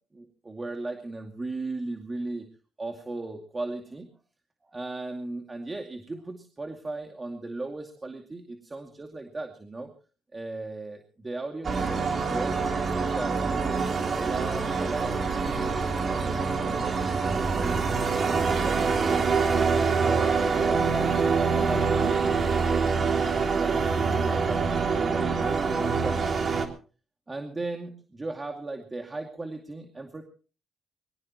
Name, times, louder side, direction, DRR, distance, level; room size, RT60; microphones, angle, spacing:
voice 1, 0.1-2.5 2.8-4.1 4.6-9.9 10.3-12.6 13.1-19.3 20.0-23.0 23.3-26.5 27.3-30.2, right 2 dB, 25° right, 3 dB, 2.4 m, -37 dB
sound 1, 11.6-26.7, right 5 dB, 45° right, 3.3 m, -25 dB
23.5 x 18.5 x 3.1 m, 0.38 s
cardioid pair, 90°, 0 cm